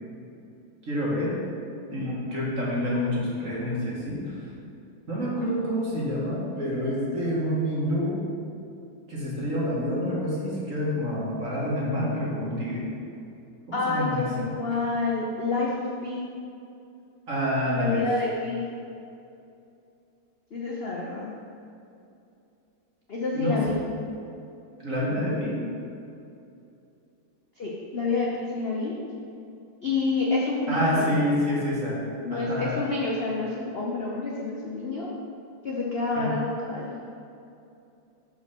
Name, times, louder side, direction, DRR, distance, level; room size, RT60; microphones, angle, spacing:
voice 1, 0.9-1.4 1.9-4.3 5.1-8.2 9.1-12.9 13.7-14.5 17.3-18.1 23.3-23.6 24.8-25.6 30.7-32.0 32.3-32.8 36.1-36.3, equal, 45° right, -6 dB, 2.2 m, -27 dB
voice 2, 13.7-16.2 17.7-18.6 20.5-21.3 23.1-23.8 27.6-28.9 29.8-31.2 32.2-35.1 35.6-36.9, left 3 dB, 45° left, -4 dB, 0.8 m, -28 dB
6.6 x 5.4 x 6.2 m, 2.7 s
omnidirectional pair, 2.1 m